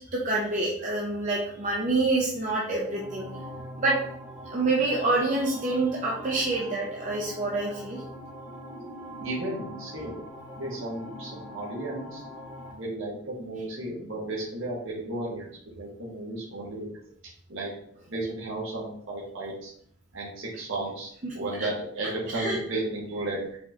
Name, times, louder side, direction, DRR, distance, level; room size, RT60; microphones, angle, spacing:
voice 1, 0.0-3.3 3.8-4.0 4.5-8.0 21.2-21.3 22.3-22.6, right 2 dB, 35° right, -4 dB, 0.7 m, -27 dB
sound 1, 2.7-12.7, equal, 5° right, 1.3 m, -43 dB
voice 2, 9.2-10.2 10.5-12.2 12.7-15.5 15.7-16.9 17.5-17.7 18.1-19.7 20.1-21.1 21.3-23.6, right 2 dB, 70° right, -5 dB, 1.3 m, -34 dB
4.9 x 3.7 x 2.8 m, 0.65 s
head